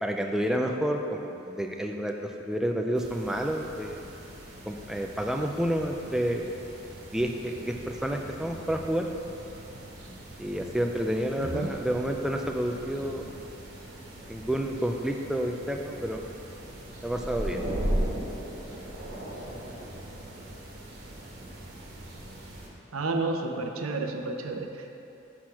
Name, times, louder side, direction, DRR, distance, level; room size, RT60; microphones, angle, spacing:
voice 1, 0.0-4.0 4.7-6.5 7.1-9.1 10.4-13.3 14.3-16.3 17.0-17.6, equal, ahead, 2 dB, 0.4 m, -29 dB
sound 1, 2.9-22.7, right 1 dB, 50° right, 1.5 m, -39 dB
voice 2, 11.4-11.7 22.9-24.9, right 3 dB, 90° right, 4 dB, 0.7 m, -31 dB
6.5 x 6.0 x 5.8 m, 2.9 s
head